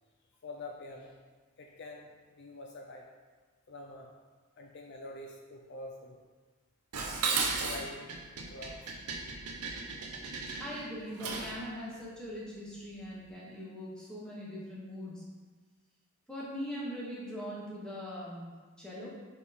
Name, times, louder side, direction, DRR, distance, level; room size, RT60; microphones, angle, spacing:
voice 1, 0.4-1.2 1.6-3.1 3.7-4.1 4.6-6.2 7.6-8.9, left 2 dB, 50° left, 1 dB, 0.5 m, -46 dB
Dishes pots and pans, 6.9-11.6, right 4 dB, 85° right, 0.8 m, -35 dB
voice 2, 10.6-15.2 16.3-19.1, equal, 5° left, -6 dB, 1.1 m, -41 dB
5.1 x 4.7 x 4.2 m, 1.4 s
head